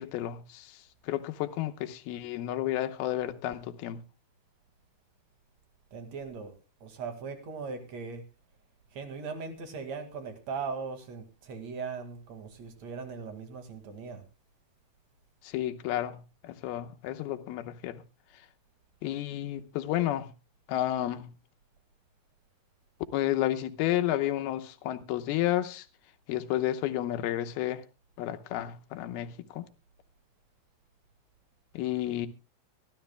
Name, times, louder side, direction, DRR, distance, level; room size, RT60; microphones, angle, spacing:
voice 1, 0.0-4.0 15.4-18.0 19.0-20.3 20.7-21.3 23.1-25.9 26.3-27.8 28.2-29.7 31.7-32.3, left 13 dB, 85° left, 2.8 m, -31 dB
voice 2, 5.9-6.5 6.8-8.2 8.9-14.2, right 5 dB, 50° right, 2.9 m, -39 dB
24.0 x 13.0 x 2.2 m
omnidirectional pair, 4.4 m